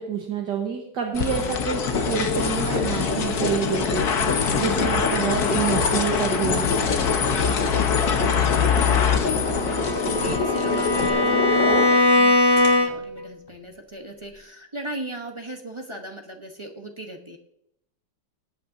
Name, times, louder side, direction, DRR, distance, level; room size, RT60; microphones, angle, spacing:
voice 1, 0.0-6.7, right 7 dB, 75° right, 1 dB, 1.9 m, -28 dB
sound 1, 1.1-11.1, left 6 dB, 60° left, 1.5 m, -24 dB
sound 2, 1.7-12.2 12.6-12.7, left 3 dB, 80° left, 3.0 m, -28 dB
voice 2, 7.4-17.4, right 1 dB, 20° right, 2 dB, 0.8 m, -39 dB
Bowed string instrument, 9.4-13.2, left 2 dB, 35° left, 0.4 m, -21 dB
20.0 x 8.5 x 2.7 m, 0.78 s
omnidirectional pair, 1.9 m